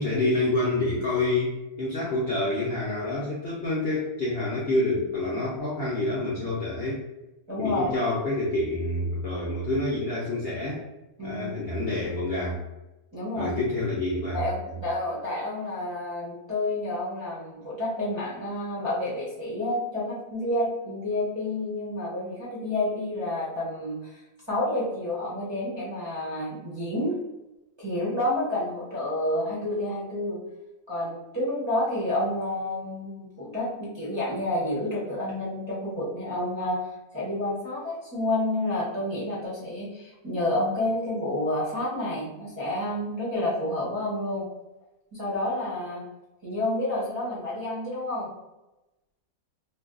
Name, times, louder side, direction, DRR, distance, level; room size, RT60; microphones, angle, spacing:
voice 1, 0.0-7.1 7.6-10.8 11.2-12.6 13.4-14.4, left 2 dB, 60° left, -6 dB, 0.6 m, -27 dB
voice 2, 7.5-7.8 11.2-11.5 13.1-13.5 14.3-24.2 24.5-27.2 27.8-30.4 30.9-44.4 45.1-46.0 46.4-48.3, left 1 dB, 25° right, -8 dB, 0.7 m, -29 dB
2.6 x 2.3 x 3.6 m, 0.99 s
omnidirectional pair, 1.7 m